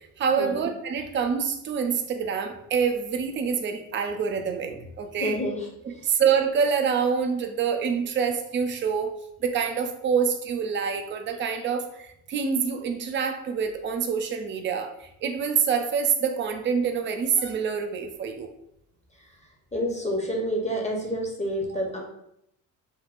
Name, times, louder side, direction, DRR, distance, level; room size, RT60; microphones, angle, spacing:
voice 1, 0.2-5.4 5.9-9.1 9.4-18.5, right 6 dB, 25° right, 5 dB, 0.4 m, -26 dB
voice 2, 5.2-6.1 19.7-22.0, equal, 15° left, 0 dB, 0.7 m, -29 dB
3.5 x 2.1 x 2.5 m, 0.76 s
figure-of-eight pair, 50°, 48 cm